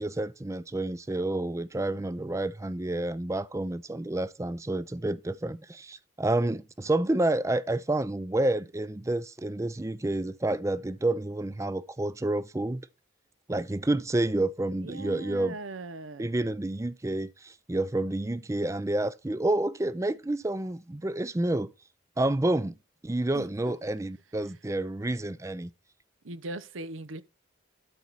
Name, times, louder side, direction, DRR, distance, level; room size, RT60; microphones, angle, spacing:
voice 1, 0.0-12.8 13.5-15.5 16.2-21.7 22.2-22.7 23.0-25.7, right 2 dB, 15° right, 0.4 m, -29 dB
voice 2, 14.8-16.3 23.3-23.7 26.2-27.2, right 2 dB, 80° right, 0.8 m, -40 dB
12.0 x 4.1 x 4.6 m
head